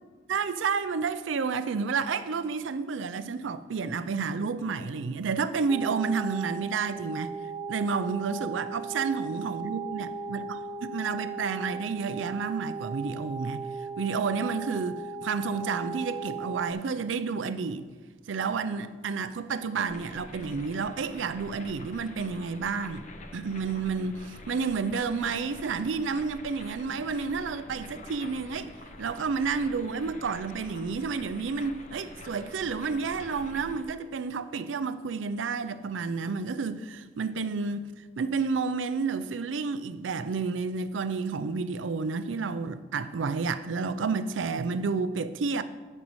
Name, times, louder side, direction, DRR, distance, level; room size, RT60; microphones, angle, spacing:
voice 1, 0.3-7.3 7.7-13.6 14.0-17.9 18.3-23.0 23.3-28.7 29.0-37.9 38.2-45.6, right 5 dB, 80° right, 0.5 m, -30 dB
sound 1, 5.7-16.7, right 5 dB, 10° right, 0.3 m, -37 dB
sound 2, 19.9-33.8, left 2 dB, 40° left, 0.8 m, -46 dB
16.0 x 5.4 x 3.1 m
head